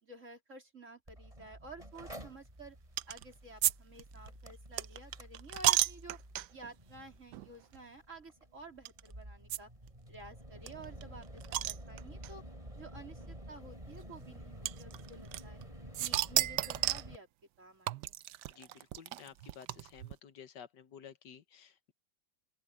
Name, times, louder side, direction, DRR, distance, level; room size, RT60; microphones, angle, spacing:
voice 1, 0.0-2.8 3.1-6.2 6.5-9.7 10.1-12.4 12.8-15.6 16.0-17.3 17.6-18.1, right 2 dB, 45° right, 4.3 m, -52 dB
Mechanical fan, 1.1-17.2, right 1 dB, 20° right, 6.1 m, -51 dB
sound 1, 3.0-3.2 3.6-3.7 4.0-6.7 7.3-7.5 7.7-7.8 8.8-9.0 9.5-9.6 9.9-10.0 10.1-10.2 10.7-12.3 13.2-13.3 14.6-15.6 15.9-17.1 17.9-20.1, right 14 dB, 85° right, 1.2 m, -33 dB
voice 2, 18.5-21.9, left 8 dB, 80° left, 1.8 m, -53 dB
open air
omnidirectional pair, 1.8 m